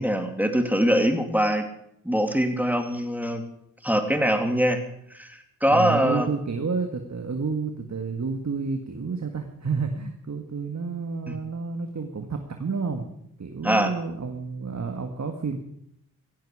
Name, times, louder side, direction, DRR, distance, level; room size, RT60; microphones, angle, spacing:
voice 1, 0.0-1.6 2.0-3.4 3.8-4.8 5.1-6.3 11.3-11.4 13.6-13.9, equal, 5° right, 6 dB, 2.8 m, -23 dB
voice 2, 5.7-13.1 13.4-15.6, right 4 dB, 40° right, 5 dB, 2.0 m, -30 dB
16.0 x 16.0 x 5.0 m, 0.74 s
supercardioid pair, 45°, 43 cm